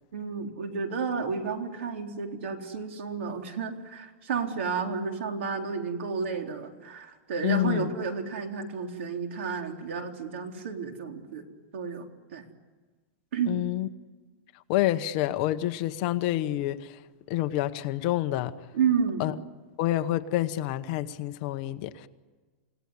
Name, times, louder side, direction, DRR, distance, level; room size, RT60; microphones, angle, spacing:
voice 1, 0.1-11.4 11.7-12.4 13.3-13.6 18.7-19.2, right 5 dB, 65° right, 4 dB, 3.8 m, -31 dB
voice 2, 7.4-7.9 13.5-13.9 14.7-17.0 17.3-18.5 19.2-19.3 19.8-22.1, left 14 dB, 35° left, 10 dB, 1.0 m, -28 dB
29.5 x 17.5 x 9.6 m, 1.4 s
supercardioid pair, 175°, 7 cm